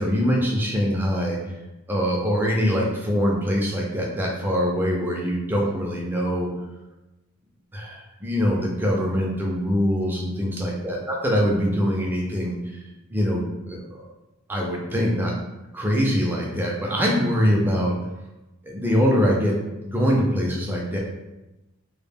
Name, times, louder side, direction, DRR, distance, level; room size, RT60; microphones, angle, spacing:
voice 1, 0.0-1.4 1.9-6.5 7.7-12.6 13.1-13.8 14.5-15.3 15.7-18.0 18.7-19.5 19.8-21.0, equal, 10° right, -2 dB, 0.3 m, -23 dB
2.2 x 2.0 x 3.3 m, 1.0 s
head